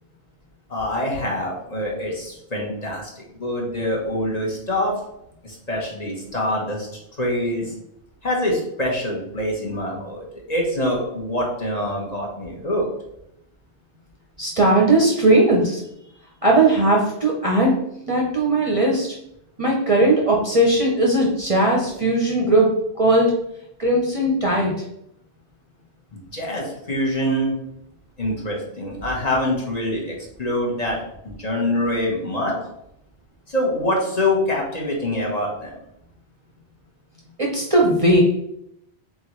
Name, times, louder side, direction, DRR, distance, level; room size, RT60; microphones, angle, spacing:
voice 1, 0.7-4.9 5.4-6.9 7.2-7.7 8.2-12.9 26.3-27.5 28.2-31.0 31.2-32.6 33.5-35.7, left 1 dB, 40° left, -2 dB, 0.9 m, -25 dB
voice 2, 14.4-15.8 16.4-17.8 18.1-19.1 19.6-22.7 23.0-23.3 23.8-24.7 37.4-38.2, right 1 dB, 40° right, -3 dB, 0.6 m, -18 dB
3.8 x 3.7 x 3.0 m, 0.79 s
omnidirectional pair, 1.1 m